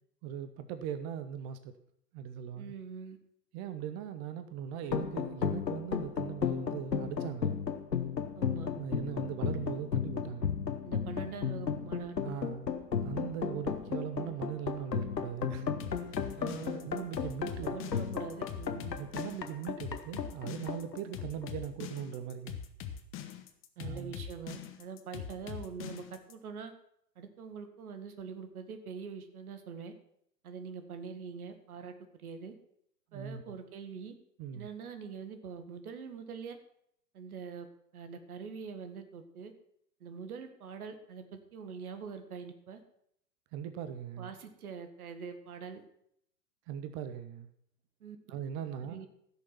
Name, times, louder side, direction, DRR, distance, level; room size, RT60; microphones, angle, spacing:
voice 1, 0.2-1.7 2.1-2.7 3.5-7.6 8.8-10.5 12.2-12.7 13.0-15.7 16.0-16.4 16.8-17.7 19.0-22.6 23.8-24.1 33.1-33.4 34.4-34.7 43.5-44.3 46.7-47.5 48.3-49.0, right 9 dB, 20° right, 11 dB, 0.5 m, -40 dB
voice 2, 2.6-3.2 8.4-8.7 10.8-12.2 16.4-16.9 17.6-19.0 23.8-26.7 27.2-29.9 30.4-32.5 33.1-34.1 34.5-36.6 37.1-37.7 37.9-39.5 40.0-42.8 44.2-45.8 48.0-48.2 48.9-49.1, right 6 dB, 60° right, 8 dB, 1.9 m, -44 dB
sound 1, 4.8-21.7, left 7 dB, 85° left, 1.2 m, -34 dB
sound 2, 15.8-26.3, left 9 dB, 25° left, 1.1 m, -42 dB
15.5 x 6.7 x 5.9 m, 0.71 s
figure-of-eight pair, 105°, 49 cm